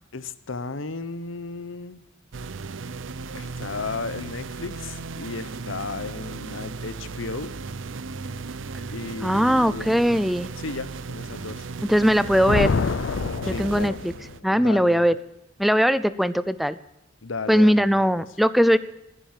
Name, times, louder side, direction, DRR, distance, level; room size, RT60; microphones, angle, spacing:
voice 1, 0.1-2.0 3.3-7.5 8.9-11.7 13.4-14.0 14.5-15.1 17.2-18.0, left 3 dB, 90° left, 15 dB, 0.9 m, -35 dB
sound 1, 2.3-14.4, right 4 dB, 75° right, 0.6 m, -36 dB
voice 2, 9.2-10.5 11.9-12.7 13.5-14.1 14.4-15.2 15.6-16.8 17.5-18.8, equal, ahead, 15 dB, 0.4 m, -20 dB
Thunder, 12.1-14.4, left 4 dB, 75° left, 0.5 m, -27 dB
15.0 x 10.0 x 7.4 m, 0.90 s
head